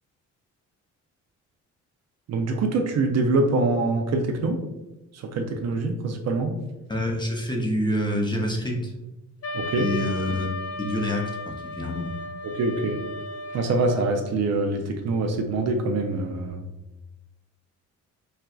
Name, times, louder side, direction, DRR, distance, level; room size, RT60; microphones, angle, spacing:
voice 1, 2.3-4.6 5.1-6.5 9.5-9.9 12.4-13.0 13.5-16.6, right 3 dB, 60° right, 4 dB, 0.5 m, -24 dB
voice 2, 6.9-8.9 9.8-10.5 10.8-12.1, left 1 dB, 15° left, 0 dB, 0.7 m, -27 dB
Wind instrument woodwind instrument, 9.4-14.3, left 2 dB, 55° left, 0.6 m, -35 dB
4.2 x 2.3 x 2.3 m, 1.0 s
cardioid pair, 90°, 30 cm